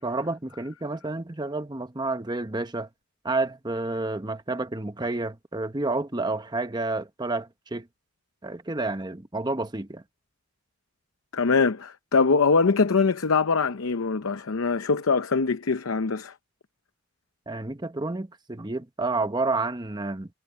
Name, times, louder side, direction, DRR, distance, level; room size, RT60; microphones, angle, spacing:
voice 1, 0.0-2.9 3.2-7.9 8.4-10.0 17.5-20.3, right 2 dB, 20° right, 0.9 m, -30 dB
voice 2, 11.3-16.3, left 4 dB, 85° left, 0.7 m, -23 dB
head